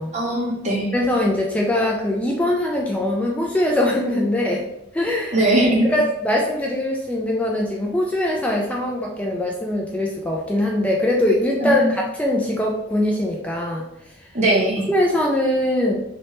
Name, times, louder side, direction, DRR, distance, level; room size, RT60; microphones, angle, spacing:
voice 1, 0.1-0.9 5.3-5.9 11.6-11.9 14.3-14.9, right 1 dB, 40° right, -2 dB, 0.9 m, -20 dB
voice 2, 0.9-4.7 4.9-5.4 5.9-13.8 14.2-14.3 14.9-16.0, left 1 dB, 5° left, -2 dB, 0.3 m, -22 dB
3.1 x 2.8 x 3.1 m, 0.85 s
head